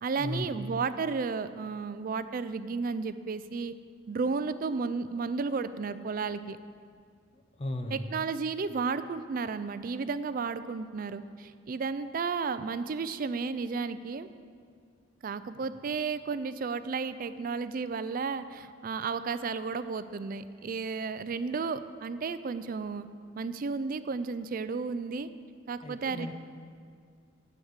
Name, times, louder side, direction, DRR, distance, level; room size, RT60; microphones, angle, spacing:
voice 1, 0.0-3.7 4.1-6.6 7.9-14.3 15.2-23.1 23.3-25.3 25.7-26.3, right 4 dB, 45° right, 13 dB, 0.4 m, -33 dB
voice 2, 7.6-8.1 25.8-26.3, left 1 dB, 30° left, 5 dB, 0.6 m, -35 dB
8.1 x 7.1 x 8.1 m, 2.1 s
head